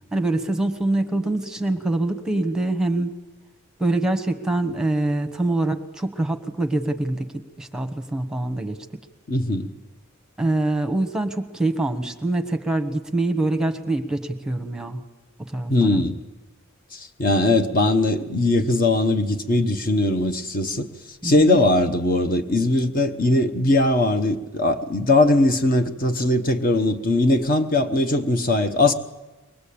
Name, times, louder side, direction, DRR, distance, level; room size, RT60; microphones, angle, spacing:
voice 1, 0.1-3.1 3.8-8.8 10.4-15.0 15.4-16.0 21.2-21.6, right 2 dB, 5° right, 1.2 m, -24 dB
voice 2, 9.3-9.7 15.7-16.2 16.9-20.9 21.2-28.9, left 2 dB, 45° left, 1.1 m, -20 dB
23.5 x 19.5 x 8.6 m
head